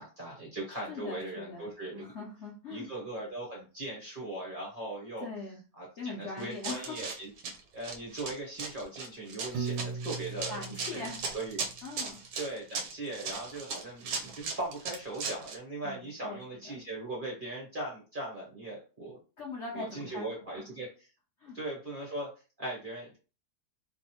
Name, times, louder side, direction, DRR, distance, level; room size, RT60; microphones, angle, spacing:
voice 1, 0.0-2.1 2.7-5.3 5.8-7.3 7.7-11.8 12.4-19.2 19.7-20.9 21.5-22.3 22.6-23.2, right 2 dB, 40° right, -3 dB, 0.8 m, -39 dB
voice 2, 0.7-2.9 5.2-5.6 6.0-7.1 10.5-11.2 11.8-12.2 15.8-16.4 16.6-16.8 19.4-20.6 21.4-21.6, left 3 dB, 60° left, -3 dB, 0.7 m, -41 dB
Run, 6.4-15.6, right 4 dB, 65° right, 1.0 m, -38 dB
Piano, 9.5-11.8, right 5 dB, 90° right, 1.3 m, -38 dB
3.1 x 2.7 x 2.8 m, 0.33 s
omnidirectional pair, 1.9 m